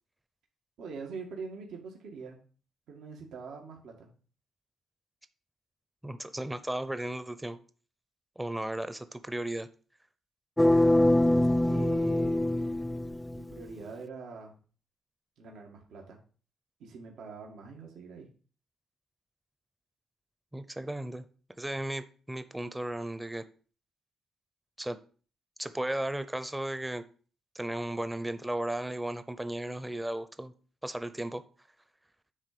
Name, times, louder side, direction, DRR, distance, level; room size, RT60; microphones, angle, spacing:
voice 1, 0.8-2.4 2.9-4.1 11.7-14.6 15.4-16.2 16.8-18.3, right 4 dB, 80° right, 1 dB, 2.1 m, -44 dB
voice 2, 6.0-7.6 8.4-9.7 20.5-21.2 21.6-23.4 24.8-25.0 25.6-27.0 27.5-30.5 30.8-31.4, right 1 dB, 10° right, 11 dB, 0.7 m, -35 dB
sound 1, 10.6-13.6, left 1 dB, 10° left, 0.4 m, -24 dB
9.9 x 3.9 x 6.9 m, 0.40 s
cardioid pair, 95°, 0 cm